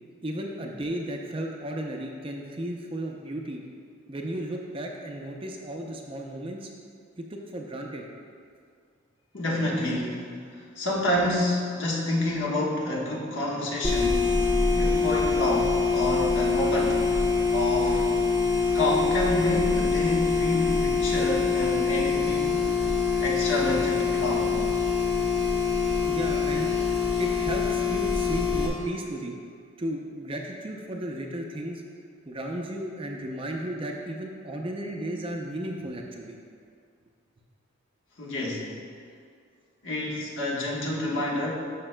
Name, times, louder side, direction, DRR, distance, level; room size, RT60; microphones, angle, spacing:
voice 1, 0.2-3.6 4.1-6.7 7.2-8.1 26.1-26.8 27.2-29.4 29.8-31.8 32.3-36.4, right 1 dB, 25° right, 1 dB, 0.5 m, -34 dB
voice 2, 9.3-10.3 10.5-17.2 17.5-18.0 18.7-22.7 23.2-24.6 38.2-38.7 39.8-41.5, left 1 dB, 65° left, -4 dB, 1.3 m, -28 dB
sound 1, 13.8-28.7, left 4 dB, 20° left, 1.0 m, -24 dB
12.0 x 5.8 x 2.2 m, 2.2 s
head